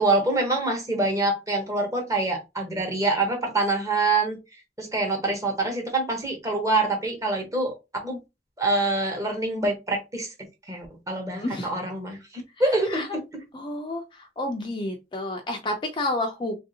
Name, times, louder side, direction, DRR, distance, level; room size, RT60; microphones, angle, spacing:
voice 1, 0.0-4.4 4.8-7.7 8.0-8.2 8.6-10.3 10.7-13.4, right 2 dB, 20° right, 1.0 m, -25 dB
voice 2, 11.3-11.7 12.9-13.1 13.5-16.6, left 1 dB, 25° left, 0.4 m, -30 dB
3.2 x 2.6 x 2.7 m
head